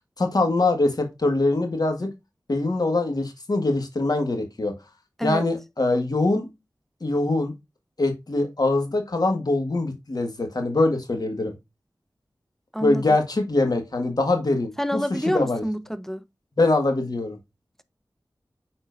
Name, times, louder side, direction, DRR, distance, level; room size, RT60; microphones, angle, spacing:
voice 1, 0.2-2.1 2.5-4.7 5.2-6.5 7.0-7.5 8.0-11.6 12.8-15.6 16.6-17.4, left 2 dB, 60° left, 1.8 m, -23 dB
voice 2, 12.7-13.2 14.8-16.2, equal, 5° left, 0.7 m, -27 dB
8.8 x 4.3 x 2.7 m
cardioid pair, 40°, 7 cm